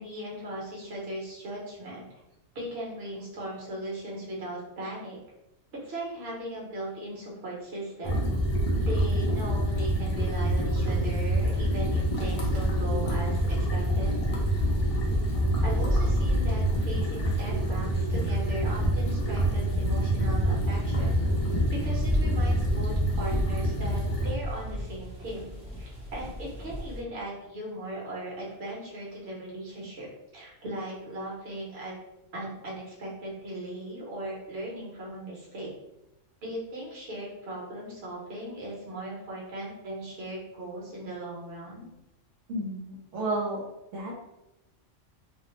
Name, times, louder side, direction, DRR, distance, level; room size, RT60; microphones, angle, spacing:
voice 1, 0.0-2.1 2.5-5.2 5.7-8.2 8.8-13.4 13.7-14.1 15.6-21.2 21.7-30.1 30.3-31.9 32.3-35.7 36.4-41.9, right 1 dB, 55° right, -5 dB, 1.1 m, -38 dB
sound 1, 8.0-24.3, right 1 dB, 45° left, 0.5 m, -26 dB
sound 2, 10.9-27.0, equal, 5° right, 0.6 m, -35 dB
voice 2, 42.5-43.6 43.9-44.2, right 1 dB, 85° right, -4 dB, 1.1 m, -31 dB
2.6 x 2.0 x 3.0 m, 0.92 s
omnidirectional pair, 1.3 m